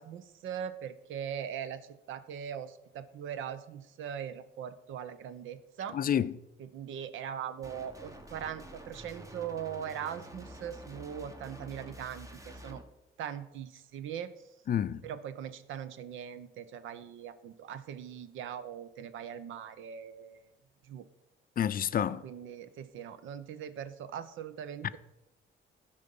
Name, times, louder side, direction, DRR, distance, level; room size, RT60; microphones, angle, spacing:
voice 1, 0.0-1.8 2.1-6.0 6.6-12.8 13.2-14.3 15.0-20.5 20.8-21.0 22.2-25.0, right 8 dB, 80° right, 0.7 m, -40 dB
voice 2, 5.9-6.3 14.7-15.0 21.6-22.2, left 9 dB, 45° left, 0.5 m, -29 dB
sound 1, 7.6-12.8, right 1 dB, 15° right, 1.2 m, -48 dB
12.0 x 5.3 x 5.4 m
cardioid pair, 90°, 20 cm